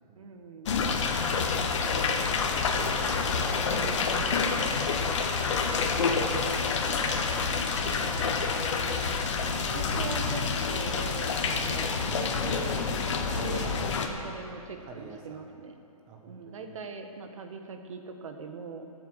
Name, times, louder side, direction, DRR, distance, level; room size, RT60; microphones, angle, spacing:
voice 1, 0.2-0.9 1.4-2.3 5.5-6.3 9.5-12.9 13.3-15.8 16.3-18.9, right 4 dB, 60° right, 6 dB, 1.5 m, -42 dB
sound 1, 0.7-14.1, left 5 dB, 50° left, 1.4 m, -28 dB
voice 2, 2.8-5.7 6.1-7.7 8.2-8.6 11.5-11.8 14.9-15.6 16.1-16.7, right 5 dB, 20° right, 1 dB, 1.3 m, -45 dB
16.5 x 8.0 x 6.6 m, 2.7 s
hypercardioid pair, 155°, 19 cm